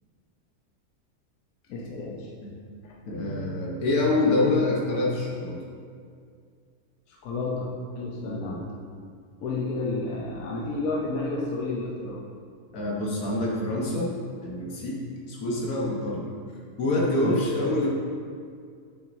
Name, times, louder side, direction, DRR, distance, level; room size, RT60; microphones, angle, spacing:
voice 1, 1.7-2.3 2.8-3.0 7.1-8.7 9.4-12.2 17.2-17.4, left 2 dB, 75° left, -3 dB, 1.2 m, -31 dB
voice 2, 3.1-5.6 8.2-8.6 12.7-14.1 14.4-15.0 15.3-16.3 16.8-17.9, left 2 dB, 90° left, -4 dB, 1.7 m, -26 dB
7.7 x 6.1 x 2.7 m, 2.2 s
omnidirectional pair, 1.5 m